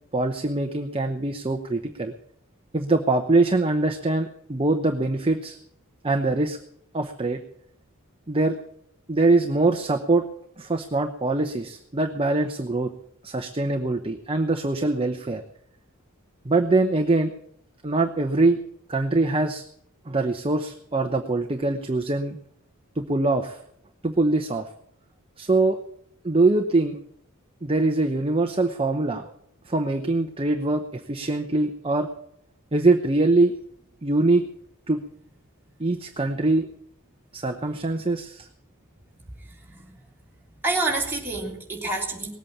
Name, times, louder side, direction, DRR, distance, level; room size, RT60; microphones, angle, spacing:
voice 1, 0.1-2.1 2.7-5.6 6.0-6.6 6.9-7.4 8.3-8.6 9.1-10.2 10.6-12.9 13.2-15.4 16.4-17.3 17.8-18.6 18.9-19.6 20.1-22.4 23.0-23.6 24.0-24.7 25.4-25.8 26.2-27.0 27.6-29.3 29.7-32.1 32.7-33.5 34.0-34.4 34.9-35.0 35.8-36.7 37.3-38.5, right 2 dB, 25° right, 5 dB, 0.9 m, -23 dB
voice 2, 39.5-40.0 40.6-42.4, right 2 dB, 10° right, -2 dB, 3.2 m, -28 dB
19.0 x 8.4 x 7.2 m, 0.71 s
head